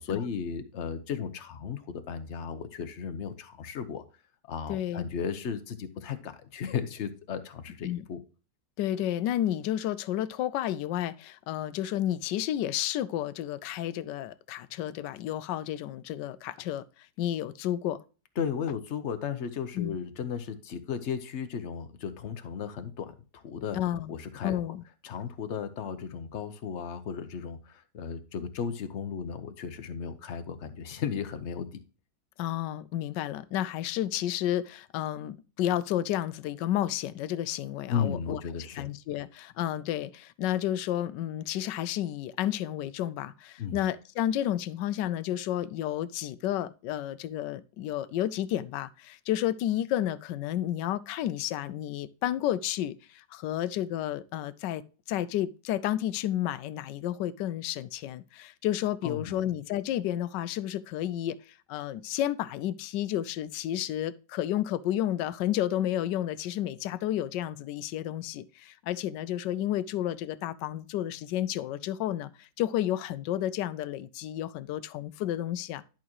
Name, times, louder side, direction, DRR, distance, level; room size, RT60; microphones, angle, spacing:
voice 1, 0.0-4.0 4.5-8.2 18.4-23.8 24.1-24.6 25.0-31.8 37.9-38.9 43.6-43.8 59.0-59.4, left 7 dB, 50° left, 0.9 m, -35 dB
voice 2, 4.7-5.1 7.8-8.0 8.8-16.8 17.2-18.0 19.7-20.0 23.7-24.1 24.4-24.8 32.4-38.4 38.8-54.8 55.1-61.4 61.7-75.8, left 12 dB, 75° left, 1.2 m, -31 dB
11.0 x 5.9 x 3.0 m
omnidirectional pair, 2.0 m